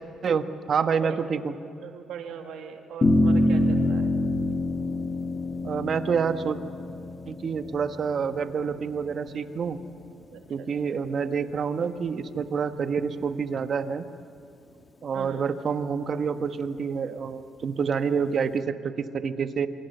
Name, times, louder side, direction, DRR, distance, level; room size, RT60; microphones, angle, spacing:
voice 1, 0.2-1.5 5.6-6.6 7.3-9.8 10.5-14.0 15.0-19.7, right 6 dB, 55° right, 8 dB, 1.4 m, -28 dB
voice 2, 1.8-4.1 10.3-11.0 15.1-15.5, right 8 dB, 80° right, 4 dB, 2.1 m, -40 dB
sound 1, 3.0-9.6, left 1 dB, 30° left, 1.9 m, -26 dB
28.0 x 25.5 x 6.8 m, 2.4 s
cardioid pair, 90°, 0 cm